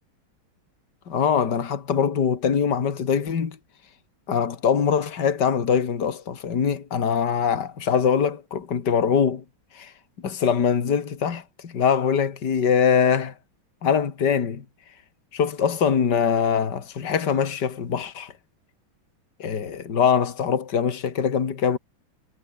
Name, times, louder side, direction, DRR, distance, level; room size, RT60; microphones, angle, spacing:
voice 1, 1.1-3.6 4.3-9.4 9.7-9.9 10.2-13.3 13.8-14.6 15.3-18.3 19.4-21.8, left 7 dB, 55° left, 2.7 m, -23 dB
omnidirectional pair, 2.2 m